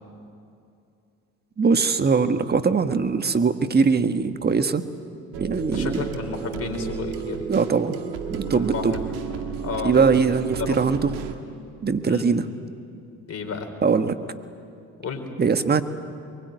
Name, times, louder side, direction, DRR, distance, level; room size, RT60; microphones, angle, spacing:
voice 1, 1.6-4.8 5.4-6.0 7.5-7.9 8.3-8.9 9.8-11.1 11.8-12.4 13.8-14.1 15.4-15.8, right 5 dB, 25° right, 9 dB, 1.5 m, -21 dB
sound 1, 5.3-11.3, right 7 dB, 80° right, 2.0 m, -32 dB
voice 2, 5.5-7.4 8.5-9.9 10.6-10.8 12.0-12.3 13.3-13.7 15.0-15.3, left 5 dB, 40° left, 4 dB, 4.5 m, -32 dB
23.0 x 21.5 x 9.5 m, 2.5 s
supercardioid pair, 70°, 36 cm